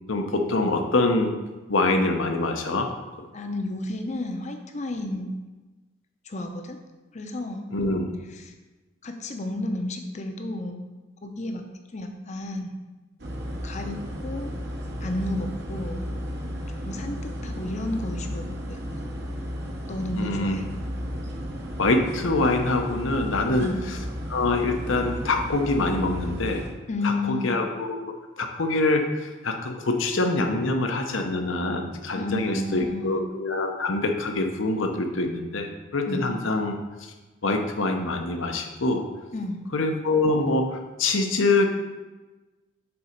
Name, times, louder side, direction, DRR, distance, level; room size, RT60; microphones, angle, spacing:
voice 1, 0.1-1.3 1.7-2.9 3.2-3.3 7.7-8.1 20.1-20.6 21.8-23.7 24.3-26.6 27.0-37.1 37.4-39.0 39.7-41.6, left 2 dB, 75° left, 4 dB, 0.8 m, -25 dB
voice 2, 3.3-5.3 6.2-6.8 7.1-7.7 8.3-8.5 9.0-10.8 11.2-11.6 11.9-12.7 13.6-14.5 15.0-16.1 16.9-18.8 19.9-20.7 23.6-23.8 26.9-27.6 32.2-33.2 36.1-36.3 39.3-39.7, left 2 dB, 35° left, 5 dB, 0.6 m, -32 dB
sound 1, 13.2-26.7, equal, 55° right, 1.0 m, -34 dB
7.0 x 4.1 x 5.1 m, 1.2 s
head